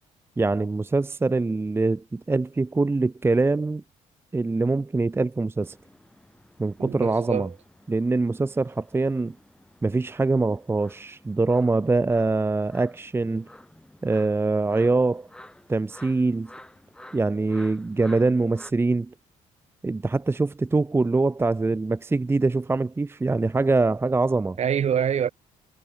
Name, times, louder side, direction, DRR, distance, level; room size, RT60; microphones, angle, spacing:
voice 1, 0.4-3.8 4.3-5.8 6.6-7.5 7.9-9.4 9.8-13.5 14.0-15.3 15.7-16.5 17.1-19.1 19.8-24.6, right 3 dB, 15° right, 0.8 m, -24 dB
sound 1, 5.6-18.7, left 1 dB, 5° left, 3.2 m, -51 dB
voice 2, 6.8-7.5 24.6-25.3, right 8 dB, 50° right, 1.7 m, -25 dB
cardioid pair, 90°, 14 cm